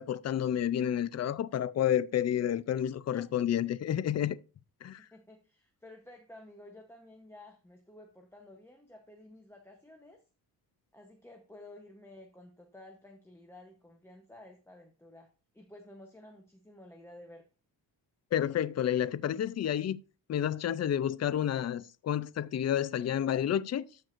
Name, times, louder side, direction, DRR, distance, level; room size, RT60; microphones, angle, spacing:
voice 1, 0.0-4.4 4.8-5.1 18.3-20.0 20.3-23.8, left 10 dB, 40° left, 0.4 m, -30 dB
voice 2, 5.0-10.2 10.9-15.3 15.5-17.4, left 1 dB, 5° left, 0.9 m, -53 dB
13.5 x 4.7 x 2.5 m
wide cardioid pair, 120°, 41 cm